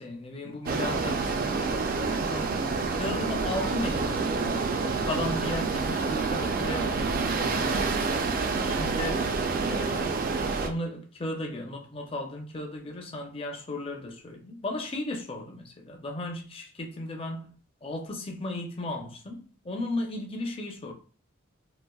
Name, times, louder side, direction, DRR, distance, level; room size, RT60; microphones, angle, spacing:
voice 1, 0.0-7.9 8.6-9.3 9.6-17.5 17.8-20.9, left 1 dB, 25° left, 0.5 m, -36 dB
sound 1, 0.7-10.7, right 4 dB, 45° right, 0.3 m, -28 dB
4.0 x 2.4 x 2.3 m
head